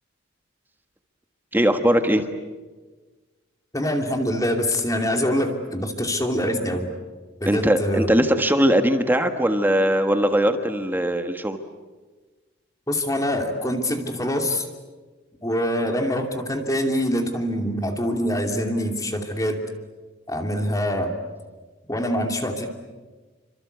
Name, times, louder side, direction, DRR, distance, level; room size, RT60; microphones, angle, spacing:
voice 1, 1.5-2.2 7.5-11.6, equal, 10° right, 7 dB, 1.4 m, -20 dB
voice 2, 3.7-6.9 7.4-8.1 12.9-14.7 15.4-19.6 20.3-21.1 21.9-22.7, equal, 15° left, 4 dB, 2.7 m, -24 dB
29.0 x 25.0 x 8.2 m, 1.3 s
head